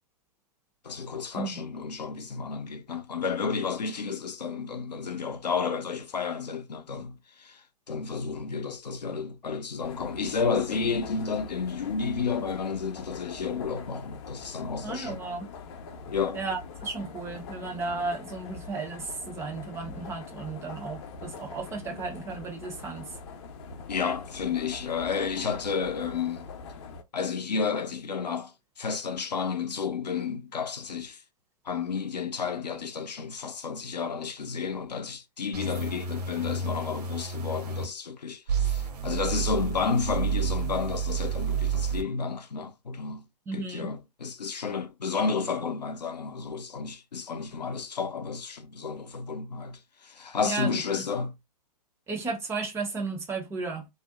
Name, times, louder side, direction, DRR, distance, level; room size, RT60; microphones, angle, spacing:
voice 1, 0.8-15.2 16.1-16.4 21.9-22.0 23.9-26.5 27.1-31.2 31.6-43.2 43.5-51.3, left 5 dB, 85° left, 0.6 m, -31 dB
sound 1, 9.8-27.0, left 5 dB, 45° left, 0.6 m, -43 dB
voice 2, 14.8-15.5 16.3-23.1 43.5-43.9 50.4-51.0 52.1-53.9, right 4 dB, 15° right, 0.4 m, -34 dB
sound 2, 35.5-37.8 38.5-42.0, right 6 dB, 75° right, 0.7 m, -30 dB
2.7 x 2.0 x 2.4 m
hypercardioid pair, 120°, 21 cm